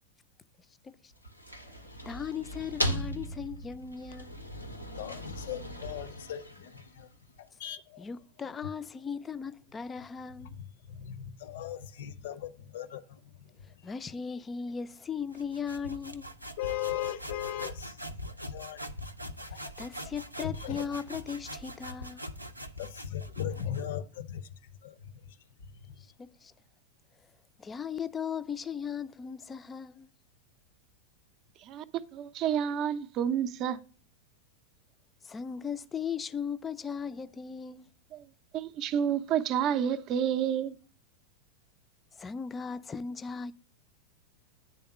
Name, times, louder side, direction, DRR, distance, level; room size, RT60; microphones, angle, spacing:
sound 1, 1.1-7.2, equal, 90° left, 0.8 m, -38 dB
voice 1, 2.0-4.3 8.0-10.5 13.8-16.3 19.5-22.3 26.0-26.5 27.6-30.1 35.2-37.9 42.2-43.5, left 6 dB, 20° left, 0.4 m, -37 dB
voice 2, 4.3-7.1 7.4-8.1 10.4-13.8 16.6-18.0 18.5-18.8 19.5-19.7 20.4-20.8 22.8-25.4 25.7-26.0, left 11 dB, 55° left, 0.6 m, -39 dB
sound 2, 15.3-23.9, equal, 85° right, 0.5 m, -42 dB
voice 3, 32.1-33.8 38.1-38.2 38.5-40.7, right 9 dB, 35° right, 0.5 m, -29 dB
9.3 x 3.5 x 5.6 m
figure-of-eight pair, 90°, 0 cm